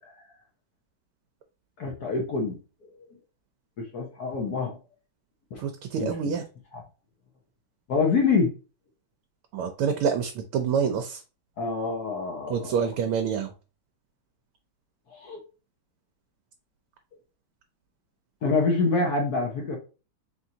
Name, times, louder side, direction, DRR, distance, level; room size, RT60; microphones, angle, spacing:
voice 1, 1.8-2.6 3.8-4.8 5.5-5.6 5.9-6.1 6.7-6.8 7.9-8.5 11.6-12.7 15.1-15.4 18.4-19.8, left 4 dB, 55° left, 1.2 m, -26 dB
voice 2, 5.6-6.4 9.5-11.2 12.5-13.5, right 7 dB, 80° right, 1.5 m, -27 dB
4.3 x 3.7 x 2.7 m
omnidirectional pair, 2.4 m